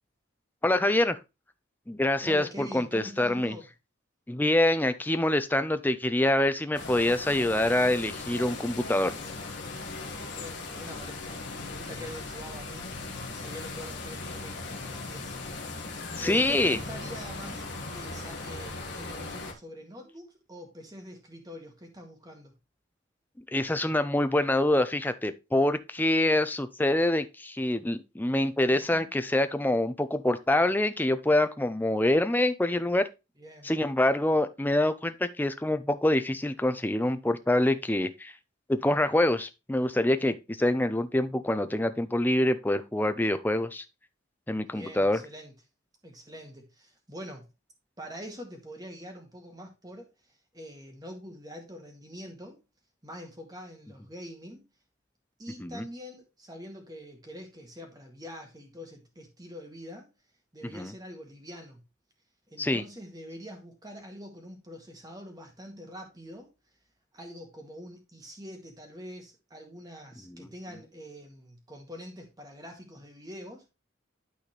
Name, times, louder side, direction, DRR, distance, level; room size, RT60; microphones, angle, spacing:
voice 1, 0.6-1.2 1.9-3.5 4.3-9.1 16.2-16.8 23.5-33.1 33.6-38.3 38.7-43.8 44.5-45.2 55.6-55.8 60.7-60.9 62.6-62.8, left 1 dB, 10° left, 0.4 m, -25 dB
voice 2, 2.2-3.7 10.1-11.4 11.6-15.9 16.2-22.5 28.7-29.1 33.4-33.7 44.7-45.5 46.0-47.5 48.0-52.6 53.0-54.7 55.4-60.1 60.5-61.8 62.5-66.5 67.1-73.7, equal, 20° right, 1.8 m, -45 dB
sound 1, 6.7-19.5, left 3 dB, 55° left, 1.7 m, -38 dB
12.0 x 4.2 x 3.1 m
head